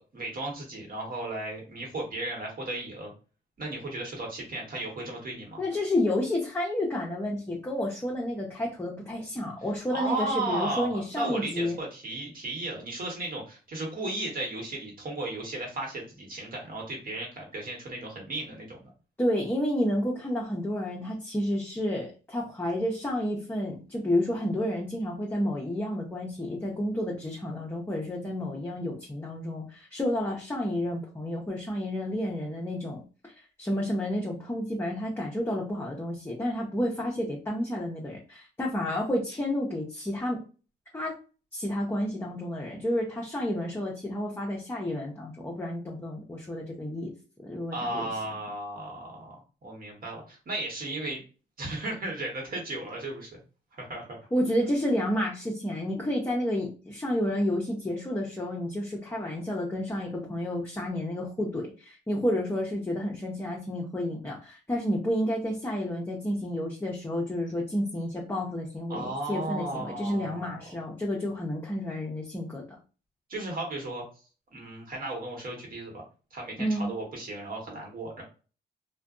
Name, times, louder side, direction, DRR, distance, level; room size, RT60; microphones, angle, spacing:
voice 1, 0.0-3.1 3.6-5.6 9.9-18.9 47.7-49.4 49.6-51.2 51.6-53.4 53.7-54.2 68.9-70.7 73.3-74.0 74.5-76.0 76.3-78.2, right 2 dB, 50° right, 0 dB, 1.2 m, -35 dB
voice 2, 5.6-11.8 19.2-33.3 33.6-40.4 40.9-41.1 41.5-47.1 47.4-48.1 54.3-72.6 76.6-76.9, left 1 dB, 10° left, -2 dB, 0.6 m, -30 dB
2.5 x 2.2 x 2.4 m, 0.35 s
cardioid pair, 85°, 19 cm